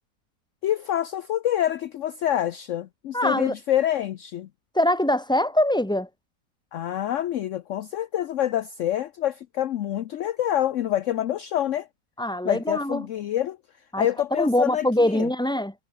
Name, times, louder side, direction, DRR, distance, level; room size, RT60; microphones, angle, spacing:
voice 1, 0.6-4.5 6.7-11.9 12.4-13.6 14.0-15.3, left 11 dB, 65° left, 0.8 m, -26 dB
voice 2, 3.1-3.5 4.7-6.1 12.2-13.0 13.9-15.7, left 1 dB, ahead, 2.3 m, -23 dB
omnidirectional pair, 1.9 m